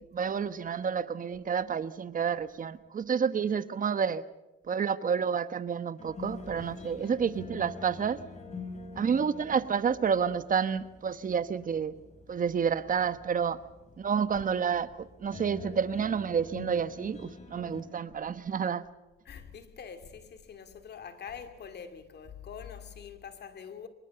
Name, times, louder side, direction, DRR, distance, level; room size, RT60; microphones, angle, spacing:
voice 1, 0.1-4.2 4.7-8.2 9.0-12.0 12.3-13.6 14.0-18.9, right 7 dB, 45° right, 1.2 m, -29 dB
sound 1, 6.0-17.8, left 3 dB, 35° left, 5.0 m, -46 dB
voice 2, 6.8-7.2 14.3-14.4 19.2-23.9, left 7 dB, 55° left, 2.6 m, -45 dB
24.0 x 21.0 x 7.0 m
cardioid pair, 90°, 20 cm